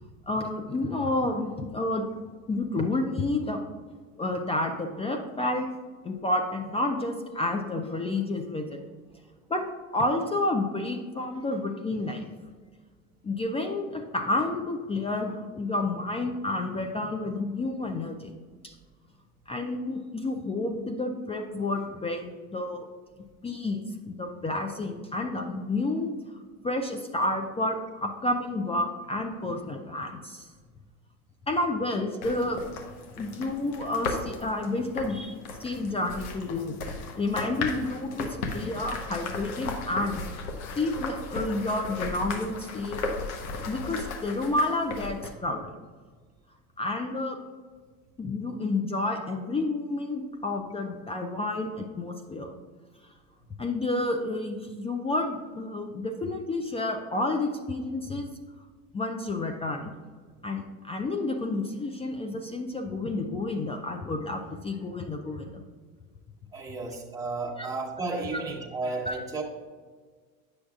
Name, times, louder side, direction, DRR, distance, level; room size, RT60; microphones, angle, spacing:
voice 1, 0.3-2.1 2.5-3.6 4.2-5.7 6.0-8.8 9.5-9.6 9.9-12.3 13.2-18.3 18.6-18.7 19.5-22.8 23.4-26.1 26.6-30.5 31.5-32.6 33.2-36.8 37.2-38.3 38.5-40.2 40.8-43.0 43.7-45.7 46.8-47.4 48.2-52.5 53.6-58.3 58.9-59.9 60.4-65.6 67.6-67.7 68.3-68.4 69.1-69.2, left 2 dB, 15° left, 4 dB, 0.4 m, -30 dB
sound 1, 32.2-45.3, left 3 dB, 75° left, 1.0 m, -36 dB
voice 2, 66.5-69.4, right 3 dB, 10° right, -2 dB, 1.1 m, -33 dB
8.4 x 6.3 x 2.4 m, 1.5 s
hypercardioid pair, 80°, 43 cm